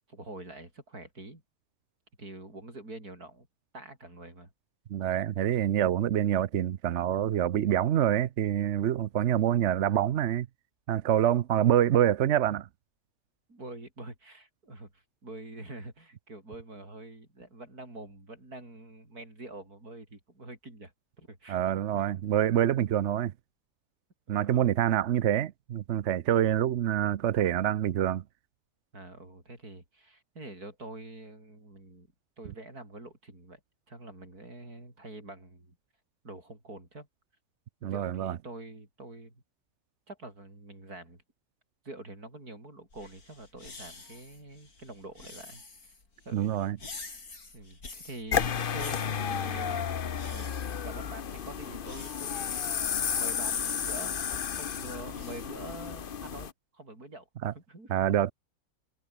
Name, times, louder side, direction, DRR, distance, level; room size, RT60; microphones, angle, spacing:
voice 1, 0.1-1.4 2.2-3.5 3.7-4.5 13.5-21.6 21.9-22.0 24.3-24.8 28.9-32.1 32.4-33.6 33.9-35.8 36.2-37.1 37.8-39.4 40.1-41.2 41.8-45.9 46.3-46.6 47.5-50.5 50.8-57.9, right 2 dB, 85° right, 7.7 m, -46 dB
voice 2, 4.9-10.5 10.9-12.7 21.5-23.3 24.3-28.2 37.8-38.4 46.3-46.8 57.4-57.5 57.9-58.3, right 11 dB, 60° right, 0.9 m, -26 dB
sound 1, 42.9-55.5, left 3 dB, 80° left, 4.7 m, -49 dB
sound 2, 48.3-56.5, left 7 dB, 45° left, 0.9 m, -32 dB
omnidirectional pair, 1.6 m